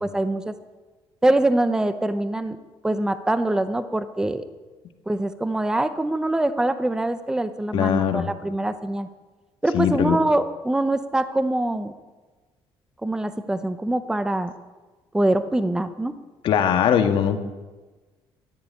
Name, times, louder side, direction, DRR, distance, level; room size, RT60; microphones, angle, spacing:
voice 1, 0.0-0.5 1.2-2.6 2.8-4.5 5.1-9.1 9.6-11.9 13.0-14.5 15.1-16.1, right 1 dB, 5° right, 11 dB, 0.8 m, -24 dB
voice 2, 7.7-8.3 9.7-10.2 16.4-17.4, left 8 dB, 60° left, 6 dB, 1.7 m, -20 dB
14.5 x 10.5 x 9.7 m, 1.3 s
cardioid pair, 135°, 10 cm